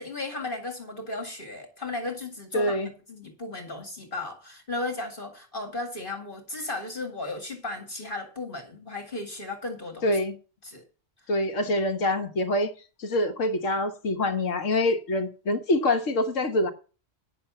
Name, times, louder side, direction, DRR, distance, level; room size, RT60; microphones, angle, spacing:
voice 1, 0.0-10.2 10.6-10.8 11.6-11.7, left 2 dB, 45° left, 2.2 m, -35 dB
voice 2, 2.5-2.9 10.0-10.4 11.3-12.7 13.0-16.7, left 1 dB, 80° left, 1.6 m, -25 dB
9.6 x 6.7 x 7.1 m
omnidirectional pair, 1.3 m